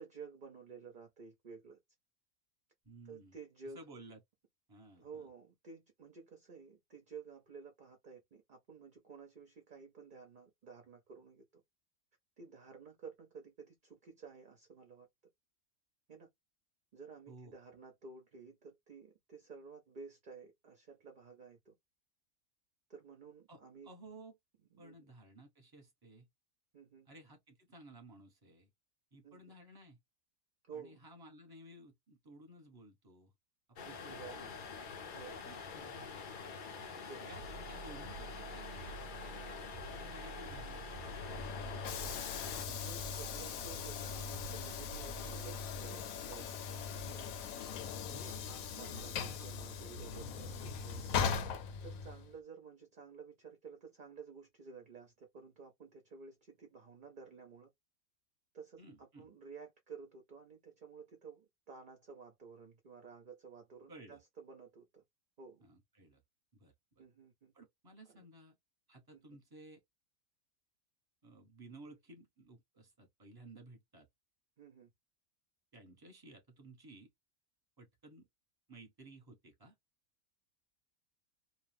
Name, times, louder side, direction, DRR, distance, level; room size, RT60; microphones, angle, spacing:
voice 1, 0.0-1.8 3.1-3.8 5.0-11.6 12.4-15.1 16.1-16.3 16.9-21.7 22.9-23.9 24.7-25.1 26.7-27.1 29.2-29.6 30.7-31.0 33.8-34.5 35.1-35.4 37.1-37.5 42.6-46.7 47.0-47.3 48.2-51.2 51.8-57.7 58.5-65.0 65.4-65.6 67.0-67.5 68.1-68.3 69.1-69.4 71.8-72.0 74.6-74.9, right 5 dB, 50° right, 0.6 m, -53 dB
voice 2, 2.8-3.4 3.7-4.2 4.7-5.3 17.3-17.5 23.5-24.3 24.8-26.3 27.1-28.7 29.1-30.0 30.7-33.3 33.9-34.5 35.5-36.2 37.0-41.3 48.1-49.1 50.5-50.6 58.8-59.3 63.9-64.2 65.6-66.2 66.5-67.0 67.5-68.6 68.9-69.8 71.2-74.1 75.7-77.1 77.8-78.3 78.7-79.7, right 1 dB, 20° right, 0.9 m, -56 dB
sound 1, 33.8-42.7, left 5 dB, 60° left, 0.5 m, -46 dB
sound 2, 37.3-46.4, right 4 dB, 90° right, 1.0 m, -50 dB
Train / Sliding door, 40.9-52.3, left 6 dB, 80° left, 1.0 m, -40 dB
2.6 x 2.3 x 3.3 m
omnidirectional pair, 1.5 m